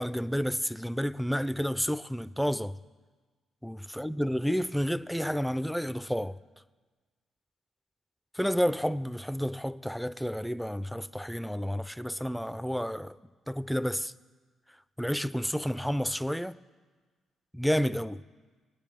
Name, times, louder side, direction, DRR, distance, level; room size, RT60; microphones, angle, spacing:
voice 1, 0.0-2.8 3.6-6.4 8.3-13.2 13.5-14.1 15.0-16.6 17.5-18.2, equal, ahead, 0.4 m, -30 dB
22.0 x 9.7 x 3.6 m
cardioid pair, 90°, 0 cm